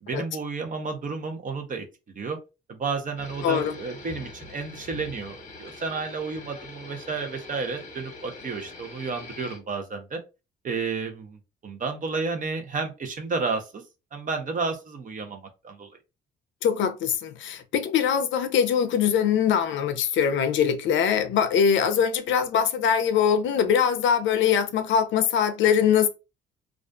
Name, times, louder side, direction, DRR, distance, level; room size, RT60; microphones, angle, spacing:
voice 1, 0.0-2.4 2.7-10.2 10.6-13.8 14.1-15.9, right 4 dB, 40° right, 0.6 m, -32 dB
sound 1, 3.2-9.6, left 3 dB, 40° left, 1.0 m, -43 dB
voice 2, 3.4-3.8 16.6-26.1, left 8 dB, 75° left, 0.5 m, -22 dB
2.4 x 2.4 x 2.2 m
cardioid pair, 90°, 20 cm